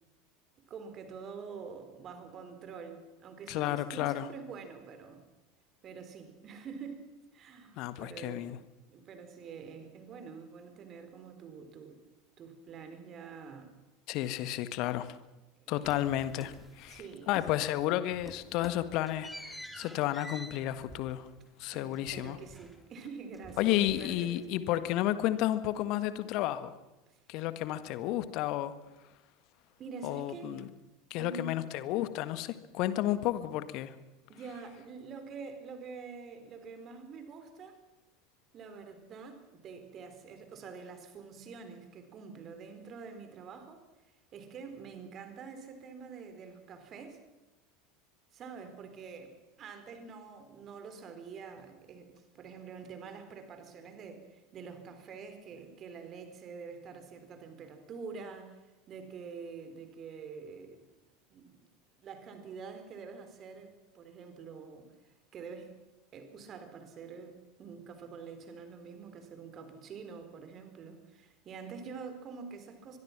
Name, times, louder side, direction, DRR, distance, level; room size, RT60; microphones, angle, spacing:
voice 1, 0.6-5.2 5.8-8.5 8.9-12.0 12.4-13.7 15.5-16.0 16.9-17.4 21.7-24.3 24.7-24.9 27.1-27.2 29.8-30.7 31.2-31.6 34.3-37.8 38.5-43.8 44.3-47.2 48.3-60.8 61.3-61.6 62.0-65.7 66.1-73.0, right 5 dB, 35° right, 8 dB, 4.2 m, -46 dB
voice 2, 3.5-4.3 7.8-8.6 14.1-15.1 15.7-17.0 17.3-21.3 21.6-22.4 23.6-26.7 27.3-28.7 30.0-30.7 31.1-33.9, left 14 dB, 50° left, 12 dB, 1.6 m, -32 dB
sound 1, 15.8-17.0 17.3-17.8 18.1-23.1 23.3-24.6, equal, ahead, 2.5 m, -49 dB
24.0 x 22.5 x 6.1 m, 1.0 s
figure-of-eight pair, 75°, 0 cm